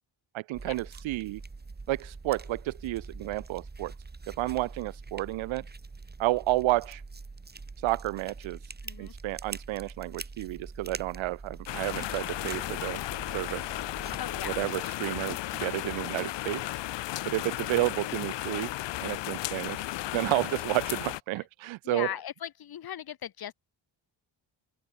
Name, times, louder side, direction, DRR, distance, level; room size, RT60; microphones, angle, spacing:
voice 1, 0.3-1.4 1.9-3.9 4.3-5.6 6.2-7.0 7.8-8.6 9.0-13.0 13.3-13.6 14.4-16.6 17.3-18.7 19.0-19.8 20.1-22.1, right 18 dB, 90° right, 0.6 m, -31 dB
sound 1, 0.5-14.7, right 3 dB, 20° right, 3.1 m, -44 dB
voice 2, 8.8-9.1 14.2-14.6 21.4-21.5 21.8-23.5, left 10 dB, 50° left, 1.2 m, -38 dB
sound 2, 11.7-21.2, left 16 dB, 70° left, 0.6 m, -34 dB
open air
cardioid pair, 130°, 46 cm